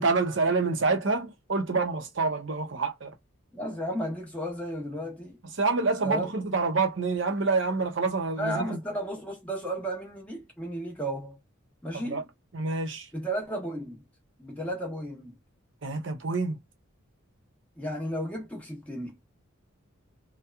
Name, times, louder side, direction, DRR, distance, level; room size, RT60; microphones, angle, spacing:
voice 1, 0.0-3.1 5.6-8.8 11.9-12.2 12.5-13.1 15.8-16.6, right 3 dB, 60° right, 0.7 m, -27 dB
voice 2, 3.5-5.4 6.0-6.3 8.4-11.4 11.8-12.2 13.1-14.0 14.4-15.4 17.8-19.2, right 1 dB, 5° left, 1.0 m, -33 dB
2.8 x 2.3 x 2.2 m
head